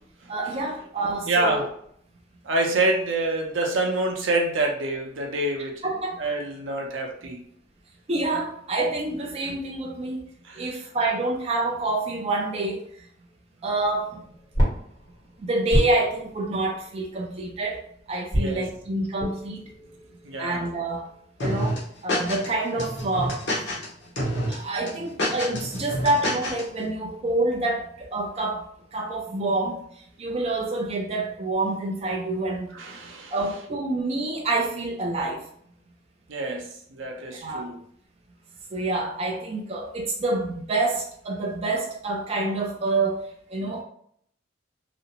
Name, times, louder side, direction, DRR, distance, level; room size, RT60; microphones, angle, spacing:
voice 1, 0.3-1.7 5.8-6.2 8.1-10.2 10.6-12.9 13.6-14.2 15.4-19.6 20.4-21.1 21.4-23.4 24.5-28.6 28.9-29.8 30.2-32.8 33.3-35.5 37.3-37.7 38.7-43.8, right 2 dB, 30° right, 0.4 m, -27 dB
voice 2, 1.3-1.7 2.4-5.8 6.2-7.4 10.5-10.7 18.3-18.6 20.2-20.6 32.7-33.3 36.3-37.8 43.6-43.7, right 2 dB, 85° right, 0.6 m, -26 dB
sound 1, 13.6-17.7 18.3-21.3, equal, 20° left, 1.2 m, -30 dB
sound 2, 21.4-22.5 22.8-23.9 24.2-24.5 24.9-26.6, equal, 60° left, 0.9 m, -27 dB
2.4 x 2.1 x 2.8 m
head